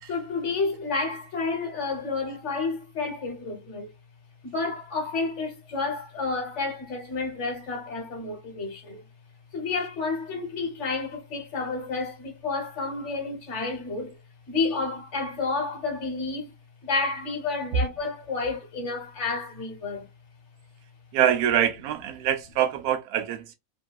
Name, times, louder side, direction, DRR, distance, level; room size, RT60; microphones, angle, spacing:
voice 1, 0.1-3.9 4.4-9.0 9.5-14.2 14.5-16.5 16.8-20.0, left 3 dB, 60° left, 1.2 m, -30 dB
voice 2, 21.1-23.6, right 10 dB, 85° right, 1.1 m, -24 dB
3.0 x 2.7 x 2.2 m
omnidirectional pair, 1.5 m